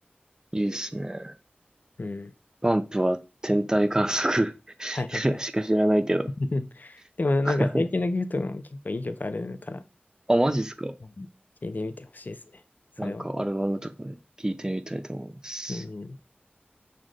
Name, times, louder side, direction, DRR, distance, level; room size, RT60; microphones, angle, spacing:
voice 1, 0.5-1.3 2.6-4.5 4.8-6.3 7.4-7.8 10.3-10.9 13.0-14.2 14.4-15.8, right 1 dB, 20° right, 0.4 m, -26 dB
voice 2, 2.0-2.3 4.9-5.4 6.5-9.8 11.2-11.3 11.6-12.4 13.0-13.3 15.7-16.2, left 2 dB, 50° left, 0.4 m, -30 dB
6.2 x 2.1 x 3.7 m
wide cardioid pair, 60°, 4 cm